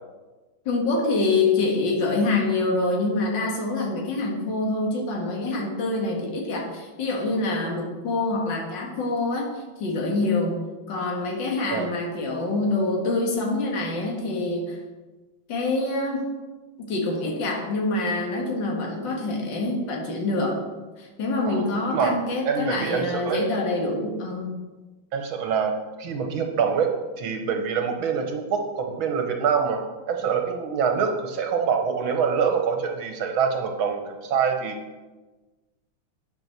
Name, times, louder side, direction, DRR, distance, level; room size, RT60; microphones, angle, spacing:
voice 1, 0.7-14.8 15.5-16.3 16.8-20.6 21.0-24.6, left 2 dB, 60° left, -1 dB, 2.4 m, -26 dB
voice 2, 21.5-22.2 22.5-23.4 25.1-26.9 27.2-34.8, right 6 dB, 75° right, 4 dB, 1.7 m, -25 dB
9.2 x 6.2 x 6.6 m, 1.2 s
omnidirectional pair, 2.3 m